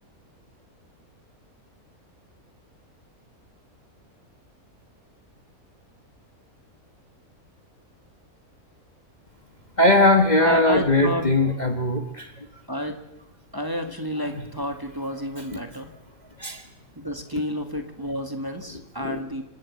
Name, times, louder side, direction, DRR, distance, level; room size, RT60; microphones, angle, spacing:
voice 1, 9.8-12.3 14.3-14.4 16.4-16.6 19.0-19.2, left 2 dB, 30° left, 5 dB, 1.4 m, -20 dB
voice 2, 10.4-11.2 12.7-13.0 13.5-15.9 16.9-19.4, equal, 15° right, 5 dB, 1.7 m, -30 dB
27.0 x 11.5 x 8.6 m, 0.89 s
omnidirectional pair, 1.6 m